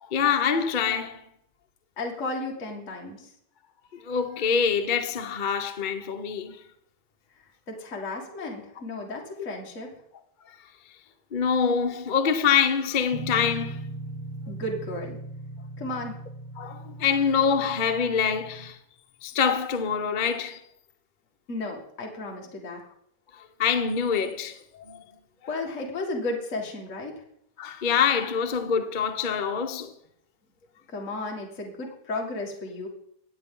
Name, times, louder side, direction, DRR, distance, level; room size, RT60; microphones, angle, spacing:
voice 1, 0.0-1.2 3.9-6.6 11.3-13.8 16.6-18.8 19.2-20.6 23.3-25.0 27.6-29.9, left 6 dB, 60° left, 0.5 m, -25 dB
voice 2, 2.0-3.3 7.7-9.9 14.5-15.2 15.8-16.1 21.5-22.8 25.5-27.2 30.9-32.9, left 2 dB, 35° left, 2.1 m, -34 dB
sound 1, 13.1-18.7, right 2 dB, 75° right, 2.2 m, -39 dB
24.0 x 8.3 x 3.8 m
omnidirectional pair, 2.4 m